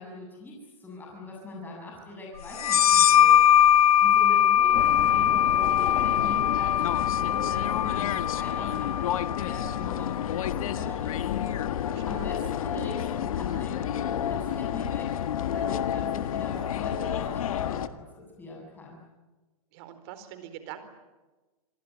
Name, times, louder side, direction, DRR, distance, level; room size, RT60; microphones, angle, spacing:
voice 1, 0.0-3.3 3.6-15.1 15.5-19.0, left 1 dB, 10° left, -2 dB, 7.7 m, -41 dB
sound 1, 2.6-9.9, left 10 dB, 90° left, 1.1 m, -22 dB
sound 2, 4.7-17.9, left 10 dB, 70° left, 1.6 m, -30 dB
voice 2, 11.9-12.3 19.7-20.8, right 11 dB, 45° right, 11 dB, 4.3 m, -43 dB
28.0 x 20.5 x 9.8 m, 1.2 s
hypercardioid pair, 145°, 19 cm